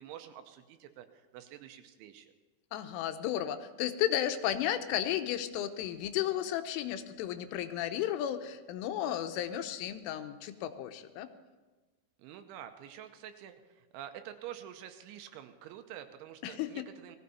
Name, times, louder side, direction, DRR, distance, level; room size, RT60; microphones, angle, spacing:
voice 1, 0.0-2.3 12.2-17.2, right 10 dB, 80° right, 8 dB, 3.1 m, -48 dB
voice 2, 2.7-11.3 16.4-16.7, left 11 dB, 85° left, 9 dB, 3.3 m, -33 dB
18.5 x 15.0 x 4.2 m, 1.2 s
omnidirectional pair, 5.6 m